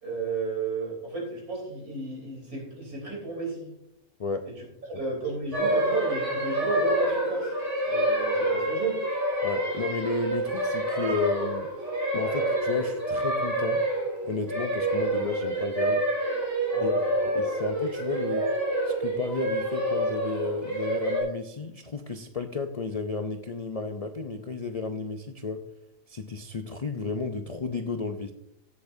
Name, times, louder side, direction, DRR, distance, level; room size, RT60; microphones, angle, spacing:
voice 1, 0.0-3.7 4.9-7.5 7.9-9.0 16.7-17.0, right 3 dB, 90° right, -1 dB, 4.1 m, -32 dB
sound 1, 5.5-21.2, right 1 dB, 50° right, 4.1 m, -27 dB
voice 2, 9.4-11.7 12.1-13.8 14.3-16.1 16.8-16.9 17.2-18.5 18.8-25.6 26.1-28.3, left 4 dB, 60° left, 7 dB, 0.3 m, -33 dB
15.5 x 8.3 x 2.6 m, 0.79 s
omnidirectional pair, 1.5 m